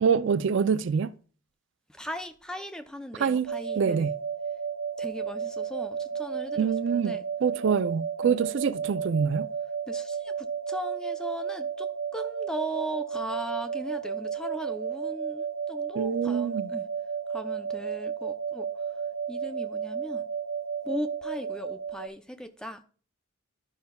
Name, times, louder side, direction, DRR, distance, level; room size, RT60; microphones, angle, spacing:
voice 1, 0.0-1.1 3.2-4.1 6.6-9.5 16.0-16.7, right 6 dB, 60° right, 0.4 m, -26 dB
voice 2, 1.9-4.1 5.0-7.2 8.2-8.4 9.9-16.9 17.3-18.7 19.3-20.3 20.8-22.8, equal, 5° left, 0.4 m, -38 dB
sound 1, 3.5-22.1, right 7 dB, 85° right, 0.8 m, -33 dB
12.5 x 5.4 x 2.2 m
head